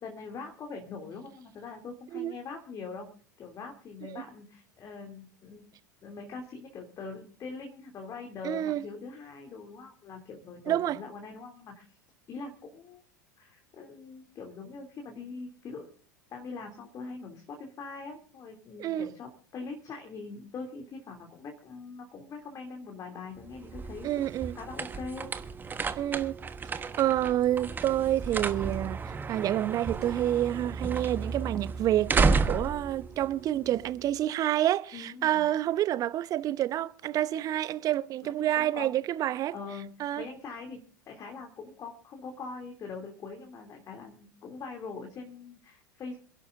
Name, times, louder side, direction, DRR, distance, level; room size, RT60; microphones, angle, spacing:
voice 1, 0.0-3.1 3.4-5.6 6.0-11.8 12.3-13.0 13.4-15.9 16.3-25.3 34.9-35.5 38.2-38.9 39.5-39.9 40.2-40.8 41.1-46.2, left 4 dB, 30° left, 2.8 m, -42 dB
voice 2, 8.4-8.8 10.7-11.0 18.8-19.1 24.0-24.5 26.0-26.4 26.7-39.5 40.0-40.2, right 12 dB, 35° right, 0.8 m, -28 dB
sound 1, 23.4-34.1, right 4 dB, 20° right, 1.2 m, -32 dB
27.5 x 11.5 x 2.6 m
figure-of-eight pair, 80°, 10 cm